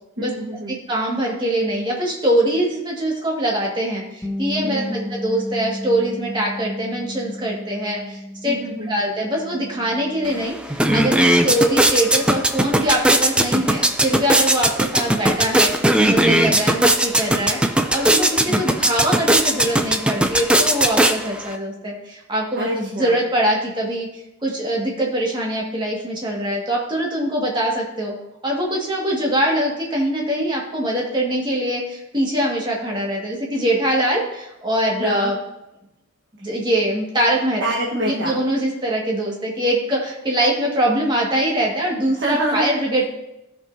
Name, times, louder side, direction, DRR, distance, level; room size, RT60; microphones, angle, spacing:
voice 1, 0.2-0.8 4.6-5.1 8.4-9.0 11.5-11.7 16.3-16.6 18.5-18.7 22.5-23.2 35.0-35.3 36.4-36.5 37.6-38.4 42.1-42.7, right 1 dB, 65° right, -5 dB, 1.4 m, -27 dB
voice 2, 0.7-8.6 8.9-28.1 28.4-35.4 36.4-37.6 38.1-43.1, right 1 dB, 25° right, -2 dB, 1.8 m, -23 dB
Bass guitar, 4.2-10.5, left 1 dB, 10° left, 1.0 m, -33 dB
sound 1, 10.2-10.3 10.6-21.5, right 1 dB, 5° right, 0.4 m, -18 dB
15.0 x 5.5 x 2.7 m, 0.90 s
head